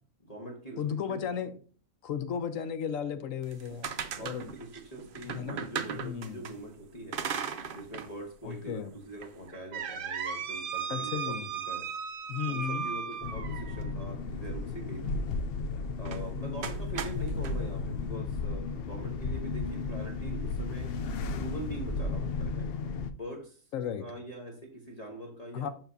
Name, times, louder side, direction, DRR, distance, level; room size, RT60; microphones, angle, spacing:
voice 1, 0.2-0.8 1.1-1.5 3.8-7.2 7.7-11.9 12.4-15.3 16.0-20.9 21.4-22.7 23.1-23.6 24.0-25.7, right 1 dB, 30° left, 1.1 m, -43 dB
voice 2, 0.8-1.5 2.0-3.9 4.2-4.5 5.2-6.5 8.4-8.9 10.9-11.5 12.3-12.9 23.7-24.1 25.5-25.7, left 8 dB, 65° left, 1.0 m, -35 dB
sound 1, 3.4-6.5 7.1-8.1 8.5-8.6 9.2-13.9 16.0-16.2 16.6-17.5, right 7 dB, 90° right, 0.4 m, -36 dB
sound 2, 13.2-23.1, left 4 dB, 90° left, 0.5 m, -34 dB
6.9 x 6.0 x 2.7 m
omnidirectional pair, 1.6 m